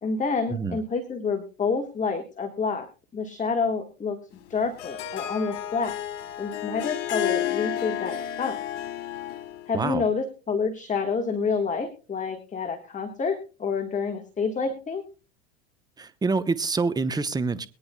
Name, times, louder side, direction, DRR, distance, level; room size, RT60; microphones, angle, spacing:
voice 1, 0.0-2.9 3.1-4.2 4.5-6.0 6.4-8.6 9.7-15.0, left 5 dB, 20° left, 6 dB, 1.4 m, -28 dB
Harp, 4.4-9.7, left 11 dB, 75° left, 1.6 m, -31 dB
voice 2, 16.0-17.7, right 4 dB, 10° right, 13 dB, 0.8 m, -26 dB
22.0 x 9.8 x 2.2 m, 0.34 s
hypercardioid pair, 90°, 37 cm